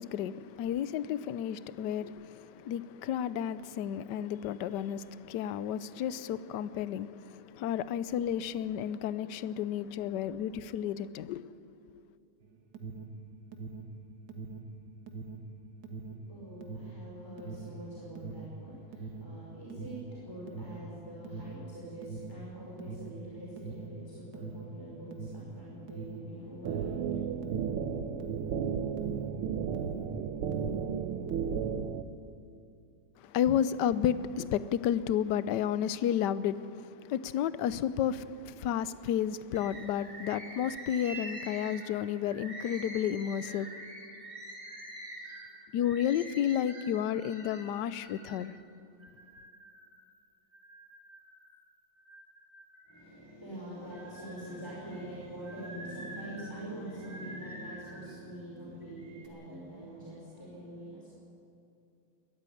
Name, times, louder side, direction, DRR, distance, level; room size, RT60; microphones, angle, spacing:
voice 1, 0.0-11.5 33.2-43.7 45.7-48.5, left 9 dB, 70° left, 1.1 m, -32 dB
Alarm, 12.4-30.2 30.4-31.7, right 4 dB, 55° right, 2.0 m, -43 dB
voice 2, 16.3-27.4 52.9-61.1, right 1 dB, 10° left, 5.0 m, -44 dB
sound 1, 26.6-32.0, right 7 dB, 90° right, 1.8 m, -33 dB
Bird, 39.5-48.5 49.0-50.0 50.5-51.5 52.0-53.3 53.8-58.1 58.8-59.3, right 1 dB, 25° right, 3.4 m, -47 dB
21.5 x 14.5 x 9.9 m
omnidirectional pair, 2.3 m